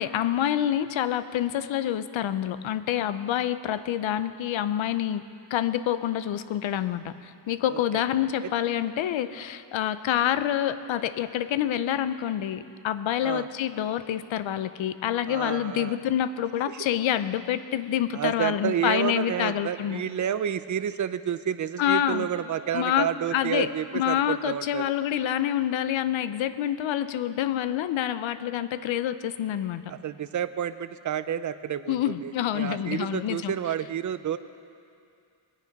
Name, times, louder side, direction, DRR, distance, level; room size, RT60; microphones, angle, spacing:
voice 1, 0.0-5.2 5.5-20.0 21.8-22.3 22.7-23.7 23.9-29.8 31.9-33.5, left 11 dB, 75° left, 13 dB, 0.7 m, -27 dB
voice 2, 7.7-8.0 13.2-13.5 15.3-16.0 18.1-24.8 29.9-34.4, right 9 dB, 40° right, 12 dB, 0.5 m, -30 dB
21.5 x 9.4 x 5.3 m, 2.5 s
wide cardioid pair, 120°, 46 cm